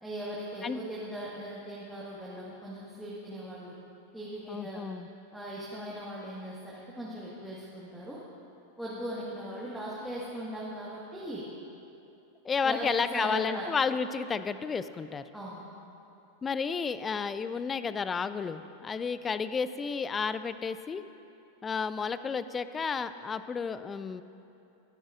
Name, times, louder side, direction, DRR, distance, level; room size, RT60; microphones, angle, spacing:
voice 1, 0.0-3.8 4.1-4.9 5.3-8.2 8.8-11.4 12.6-13.7 15.3-15.6, right 1 dB, ahead, -7 dB, 1.6 m, -39 dB
voice 2, 4.5-5.1 12.4-15.3 16.4-21.0 21.6-24.2, left 5 dB, 20° left, 14 dB, 0.4 m, -32 dB
22.5 x 10.0 x 2.5 m, 2.8 s
figure-of-eight pair, 90°, 0 cm